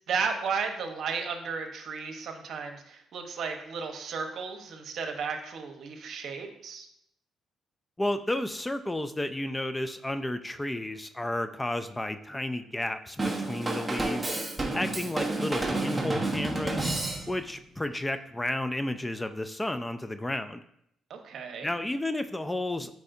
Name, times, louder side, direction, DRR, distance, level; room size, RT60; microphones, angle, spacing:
voice 1, 0.1-6.9 21.1-21.7, right 5 dB, 65° right, 4 dB, 1.1 m, -34 dB
voice 2, 8.0-14.4 14.7-16.9 17.3-20.6 21.6-23.0, left 1 dB, 15° left, 10 dB, 0.4 m, -32 dB
Drum kit / Drum, 13.2-17.6, right 2 dB, 15° right, 1.1 m, -30 dB
8.4 x 4.7 x 2.7 m, 0.73 s
cardioid pair, 90°, 0 cm